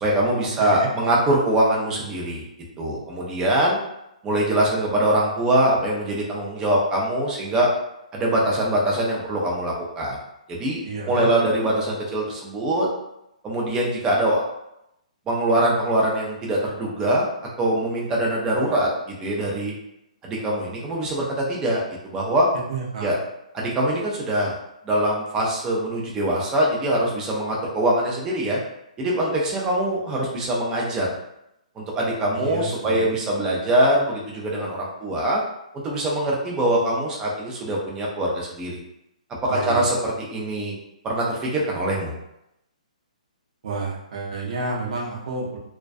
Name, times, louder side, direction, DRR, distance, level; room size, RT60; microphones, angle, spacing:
voice 1, 0.0-2.4 2.8-3.8 4.2-7.7 8.1-10.2 10.5-12.9 13.4-14.4 15.3-17.3 17.6-19.7 20.2-22.5 23.0-23.2 23.5-24.6 24.8-28.6 29.0-31.1 31.8-35.4 35.7-38.8 39.4-40.8 41.0-42.1, right 1 dB, 15° right, -3 dB, 0.5 m, -23 dB
voice 2, 0.6-0.9 10.8-11.3 22.7-23.1 32.3-33.2 39.5-39.8 43.6-45.6, right 3 dB, 55° right, -2 dB, 0.7 m, -30 dB
2.2 x 2.2 x 2.5 m, 0.84 s
hypercardioid pair, 140°, 4 cm